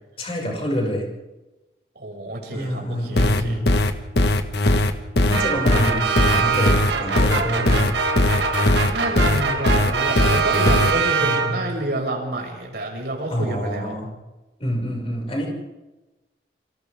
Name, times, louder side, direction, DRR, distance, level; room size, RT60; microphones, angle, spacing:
voice 1, 0.2-1.1 2.5-3.8 5.3-7.9 11.2-11.6 13.3-14.1 14.6-15.5, equal, 35° left, -1 dB, 6.1 m, -27 dB
voice 2, 1.9-3.6 8.9-14.0, right 1 dB, 70° right, -1 dB, 6.4 m, -29 dB
sound 1, 3.2-10.9, left 1 dB, 70° left, 1.5 m, -19 dB
sound 2, 5.3-11.8, right 5 dB, 85° right, 1.7 m, -23 dB
29.5 x 25.0 x 3.7 m, 1.1 s
head